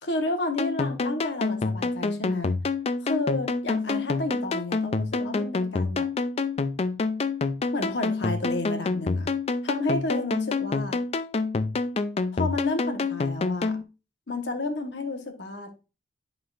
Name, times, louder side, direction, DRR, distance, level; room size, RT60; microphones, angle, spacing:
voice 1, 0.0-2.6 3.0-6.1 7.7-9.3 9.6-11.0 12.3-13.8 14.3-15.9, left 2 dB, 75° left, 1.2 m, -31 dB
sound 1, 0.6-13.8, left 3 dB, 35° left, 0.4 m, -27 dB
11.0 x 3.8 x 2.5 m
head